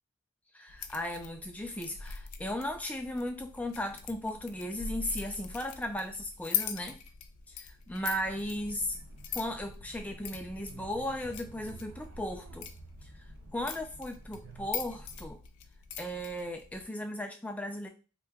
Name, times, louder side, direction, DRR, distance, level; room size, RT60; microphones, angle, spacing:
voice 1, 0.5-7.0 7.6-9.0 9.3-12.7 13.5-15.4 16.0-17.9, left 1 dB, 5° left, 4 dB, 0.3 m, -36 dB
sound 1, 0.7-16.8, left 8 dB, 90° left, 0.4 m, -42 dB
sound 2, 8.1-15.3, right 1 dB, 70° right, 0.5 m, -50 dB
2.9 x 2.2 x 3.4 m, 0.34 s
head